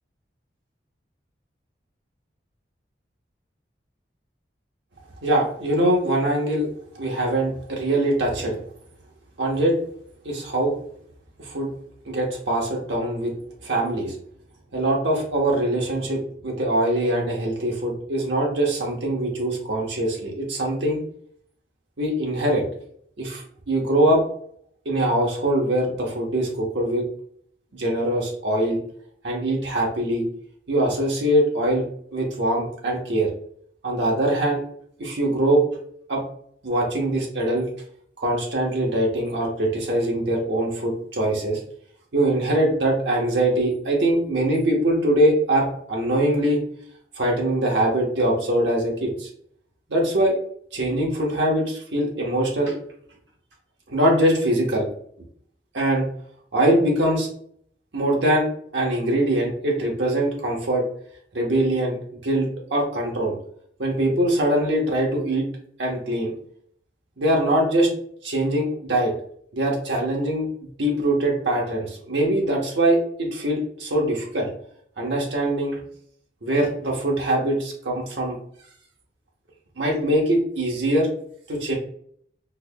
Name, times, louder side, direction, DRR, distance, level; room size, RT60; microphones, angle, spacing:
voice 1, 5.2-6.7 7.0-8.5 9.4-9.8 10.2-10.7 11.4-11.7 12.1-13.3 13.6-14.1 14.7-21.0 22.0-22.6 23.2-24.2 24.8-27.0 27.7-28.8 29.2-30.3 30.7-31.9 32.1-33.3 33.8-34.6 35.0-35.6 36.1-36.2 36.6-37.7 38.2-41.6 42.1-46.6 47.2-49.3 49.9-50.4 50.7-52.7 53.9-54.9 55.7-56.1 56.5-57.3 57.9-58.5 58.7-60.8 61.3-63.3 63.8-65.5 65.8-66.3 67.2-67.9 68.2-69.1 69.5-70.5 70.8-74.5 75.0-75.8 76.4-78.4 79.8-81.1 81.5-81.7, right 1 dB, 85° right, -1 dB, 1.0 m, -22 dB
4.4 x 2.8 x 2.2 m, 0.63 s
head